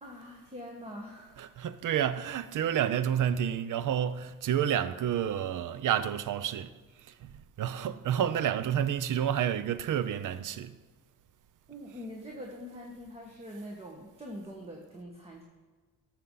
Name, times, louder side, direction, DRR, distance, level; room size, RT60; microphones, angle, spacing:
voice 1, 0.0-1.7 11.7-15.4, equal, 15° right, 1.4 m, -44 dB
voice 2, 1.4-6.8 7.0-10.8, right 9 dB, 65° right, 0.6 m, -30 dB
12.5 x 6.9 x 3.9 m
cardioid pair, 105°, 34 cm